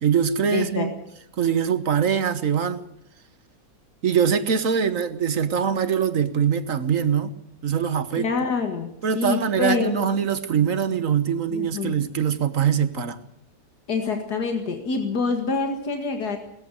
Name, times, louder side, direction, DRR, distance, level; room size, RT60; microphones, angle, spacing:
voice 1, 0.0-0.9 1.4-2.8 4.0-7.3 7.6-8.3 9.0-13.2, right 7 dB, 60° right, 12 dB, 1.5 m, -23 dB
voice 2, 0.5-0.9 8.2-9.9 11.5-12.0 13.9-16.4, left 4 dB, 90° left, 5 dB, 2.5 m, -26 dB
19.0 x 14.5 x 9.8 m, 0.79 s
omnidirectional pair, 1.6 m